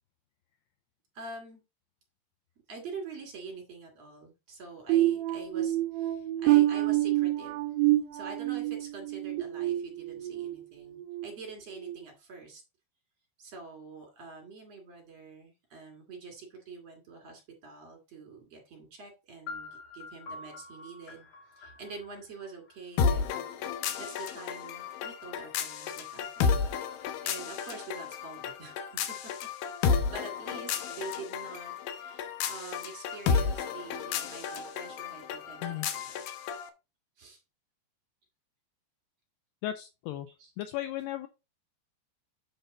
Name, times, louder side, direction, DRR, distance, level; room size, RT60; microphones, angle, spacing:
voice 1, 1.1-1.6 2.7-7.6 8.1-12.6 13.4-21.3 21.6-26.6 27.2-29.2 29.8-36.2 37.2-37.4 40.4-40.5, right 4 dB, 40° right, 1 dB, 3.2 m, -46 dB
sound 1, 4.9-10.5 11.0-11.3 11.8-12.0, right 16 dB, 80° right, 2.0 m, -27 dB
sound 2, 19.5-23.3, left 3 dB, 50° left, 2.0 m, -46 dB
sound 3, 23.0-36.7, left 6 dB, 70° left, 2.3 m, -32 dB
voice 2, 39.6-40.3 40.6-41.3, left 13 dB, 90° left, 9 dB, 2.3 m, -35 dB
8.7 x 5.7 x 3.9 m, 0.26 s
omnidirectional pair, 5.3 m